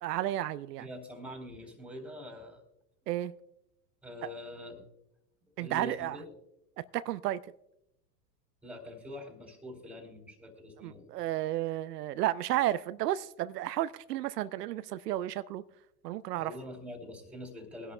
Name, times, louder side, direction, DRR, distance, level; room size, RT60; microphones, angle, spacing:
voice 1, 0.0-0.9 3.1-3.3 5.6-6.2 6.9-7.4 10.8-15.6 16.0-16.5, right 14 dB, 75° right, 0.6 m, -32 dB
voice 2, 0.8-2.6 4.0-4.9 5.5-6.3 8.6-11.1 16.4-17.9, left 1 dB, 5° right, 3.5 m, -44 dB
22.5 x 11.0 x 2.2 m
hypercardioid pair, 110°, 48 cm